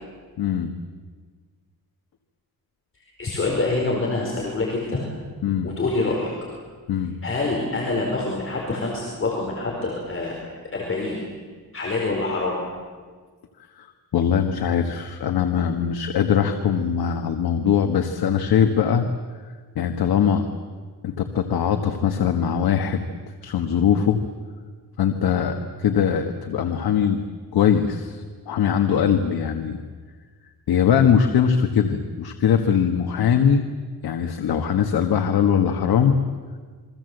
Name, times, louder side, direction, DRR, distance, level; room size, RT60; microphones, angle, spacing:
voice 1, 0.4-0.7 5.4-5.7 6.9-7.1 13.8-13.9 14.1-19.0 19.7-20.5 21.0-23.0 23.4-24.2 25.0-27.2 27.5-29.8 30.7-33.6 34.0-36.2, left 8 dB, 85° left, 6 dB, 1.6 m, -21 dB
voice 2, 3.2-5.0 5.6-6.3 7.2-10.3 10.6-11.2 11.7-12.6, left 3 dB, 35° left, -2 dB, 4.9 m, -26 dB
29.0 x 23.0 x 8.0 m, 1.5 s
wide cardioid pair, 150°, 36 cm